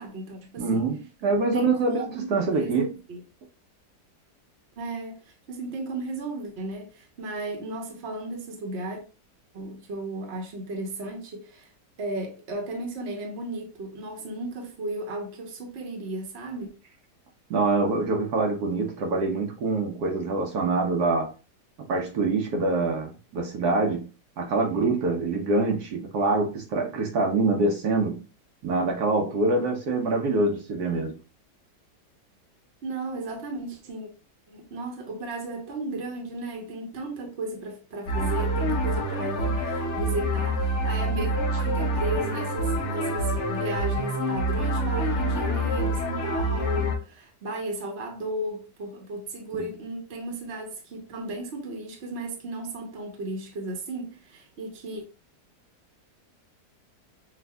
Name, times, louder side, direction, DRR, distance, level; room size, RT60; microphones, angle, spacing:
voice 1, 0.0-0.9 1.2-3.2 4.8-9.0 9.5-11.7 12.0-16.7 32.8-34.1 34.5-55.0, right 2 dB, 45° right, 1.1 m, -35 dB
voice 2, 0.6-2.0 2.3-2.8 17.5-21.3 21.8-24.1 24.4-28.2 28.6-31.2, right 3 dB, 70° right, 1.2 m, -25 dB
sound 1, 38.1-46.9, right 1 dB, 50° left, 1.0 m, -26 dB
5.9 x 2.5 x 2.3 m
omnidirectional pair, 1.8 m